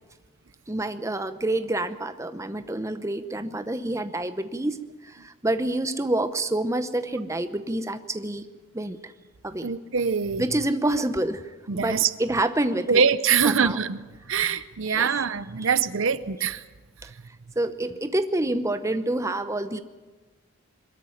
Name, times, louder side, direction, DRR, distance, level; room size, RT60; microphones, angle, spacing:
voice 1, 0.7-4.8 5.0-8.4 8.7-9.1 9.4-9.7 10.4-13.0 13.4-13.8 14.9-15.1 17.0-17.1 17.6-19.8, right 1 dB, 15° right, 10 dB, 0.8 m, -27 dB
voice 2, 9.6-10.4 11.7-12.1 12.9-16.6 17.0-17.1, right 6 dB, 60° right, 15 dB, 0.7 m, -24 dB
22.0 x 13.5 x 9.9 m, 1.3 s
head